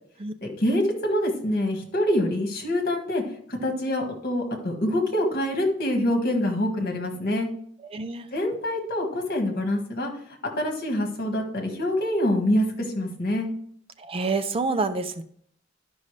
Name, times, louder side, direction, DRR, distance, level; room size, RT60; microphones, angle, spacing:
voice 1, 0.4-3.2 3.5-7.5 8.3-10.1 10.6-13.5, left 1 dB, 50° left, 2 dB, 1.6 m, -25 dB
voice 2, 7.8-8.3 14.0-15.2, right 3 dB, 30° right, 10 dB, 0.4 m, -27 dB
12.0 x 5.4 x 3.2 m, 0.63 s
head